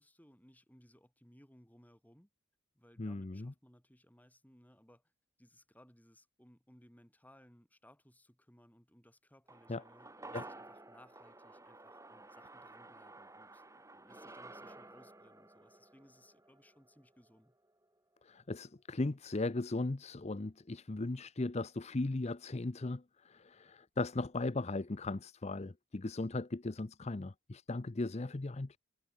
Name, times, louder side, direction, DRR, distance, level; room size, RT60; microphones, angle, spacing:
voice 1, 0.0-2.3 2.7-5.0 5.4-17.6, equal, 5° left, 5.2 m, -63 dB
voice 2, 3.0-3.5 9.7-9.8 10.3-10.4 18.2-28.8, left 2 dB, 30° left, 0.6 m, -37 dB
sound 1, 9.5-18.0 18.3-18.4, right 2 dB, 15° right, 3.0 m, -53 dB
head